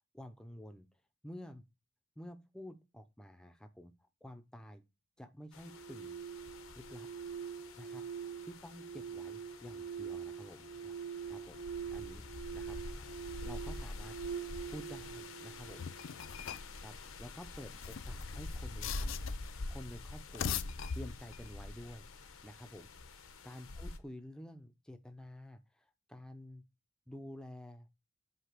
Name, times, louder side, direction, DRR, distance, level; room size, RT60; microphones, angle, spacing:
voice 1, 0.1-0.9 1.2-1.6 2.2-4.8 5.2-6.2 6.7-7.1 7.8-8.0 8.4-11.0 11.3-11.6 11.9-12.3 12.5-13.2 13.4-14.2 14.7-15.9 16.8-20.6 20.9-22.1 22.4-26.6 27.1-27.9, equal, 5° left, 0.6 m, -50 dB
sound 1, 5.5-24.0, left 2 dB, 85° left, 0.9 m, -46 dB
sound 2, 5.6-16.6, right 7 dB, 70° right, 0.9 m, -44 dB
sound 3, 15.8-16.8 17.7-19.5 20.2-21.5, left 8 dB, 70° left, 0.4 m, -41 dB
8.1 x 2.8 x 5.9 m
head